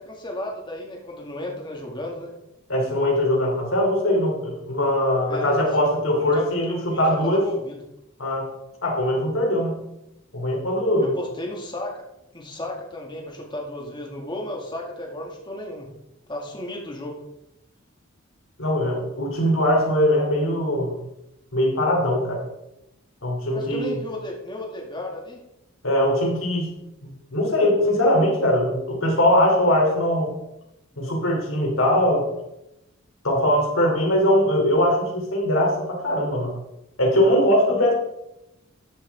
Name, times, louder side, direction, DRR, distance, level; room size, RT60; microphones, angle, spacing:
voice 1, 0.0-2.3 5.3-7.8 11.0-12.0 12.3-15.9 16.3-17.2 23.5-25.4, left 1 dB, 20° left, 0 dB, 2.1 m, -34 dB
voice 2, 2.7-7.4 8.2-8.5 8.8-9.8 10.3-11.1 18.6-20.9 21.5-22.4 23.2-24.0 25.8-26.8 27.0-30.3 31.0-32.2 33.2-36.5 37.0-37.9, left 1 dB, 75° left, 0 dB, 3.2 m, -21 dB
13.0 x 7.1 x 3.6 m, 0.87 s
head